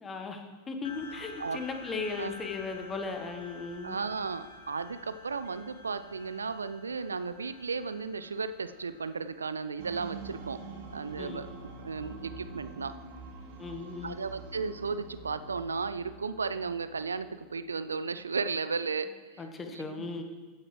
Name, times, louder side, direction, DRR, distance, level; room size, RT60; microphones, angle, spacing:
voice 1, 0.0-4.0 11.2-11.5 13.6-14.2 19.4-20.2, left 4 dB, 20° left, 5 dB, 1.3 m, -37 dB
sound 1, 0.8-11.7, left 2 dB, 65° left, 1.0 m, -50 dB
voice 2, 3.8-10.6 10.9-11.5 11.8-12.9 14.0-20.1, right 5 dB, 75° right, 13 dB, 0.4 m, -35 dB
sound 2, 9.8-17.9, right 4 dB, 50° right, 1.6 m, -46 dB
15.5 x 9.6 x 3.2 m, 1.4 s
figure-of-eight pair, 90°, 0 cm